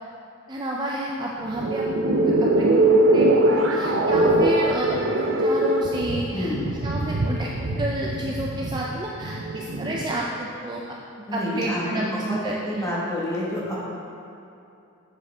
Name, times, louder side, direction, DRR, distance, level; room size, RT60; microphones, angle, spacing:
voice 1, 0.5-10.8 11.2-12.9, right 1 dB, 20° right, -3 dB, 0.4 m, -30 dB
sound 1, 1.4-10.1, right 1 dB, 70° right, 0.6 m, -22 dB
voice 2, 6.3-6.9 11.3-12.4 12.7-13.9, left 1 dB, 15° left, -7 dB, 1.4 m, -28 dB
7.4 x 6.8 x 3.5 m, 2.7 s
head